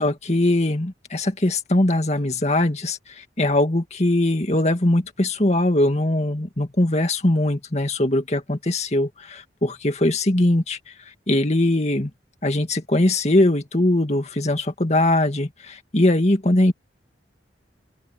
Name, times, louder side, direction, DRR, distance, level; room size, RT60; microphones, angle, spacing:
voice 1, 0.0-10.9 11.3-12.1 12.4-16.7, left 1 dB, 40° left, 2.1 m, -21 dB
open air
head